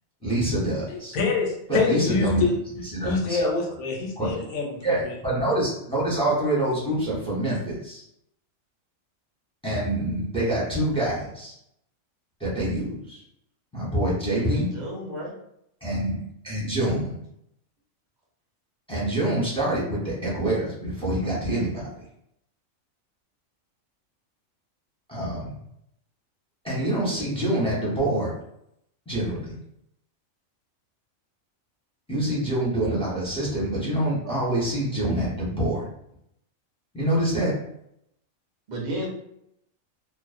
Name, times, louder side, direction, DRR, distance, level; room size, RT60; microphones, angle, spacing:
voice 1, 0.2-1.2 1.7-2.5 2.9-3.5 4.2-4.3 4.8-8.0 9.6-11.5 12.4-13.2 13.7-14.7 15.8-17.2 18.9-21.8 25.1-25.5 26.6-28.3 29.1-29.4 32.1-35.8 36.9-37.5, right 1 dB, 5° left, -8 dB, 0.5 m, -26 dB
voice 2, 0.9-2.6 3.0-5.2, left 4 dB, 80° left, 2 dB, 1.0 m, -26 dB
voice 3, 14.4-15.3 16.7-17.0 38.7-39.1, right 1 dB, 40° right, -3 dB, 0.7 m, -33 dB
2.5 x 2.0 x 2.4 m, 0.76 s
omnidirectional pair, 1.4 m